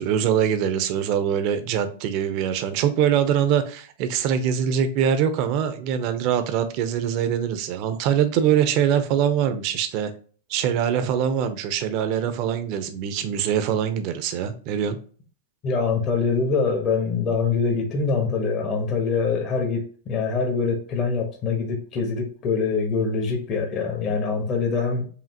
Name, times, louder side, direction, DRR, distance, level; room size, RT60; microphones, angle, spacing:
voice 1, 0.0-10.1 10.5-15.0, right 9 dB, 45° right, 0.7 m, -23 dB
voice 2, 15.6-25.1, left 5 dB, 35° left, 1.1 m, -24 dB
5.0 x 2.8 x 2.8 m
hypercardioid pair, 125°, 0 cm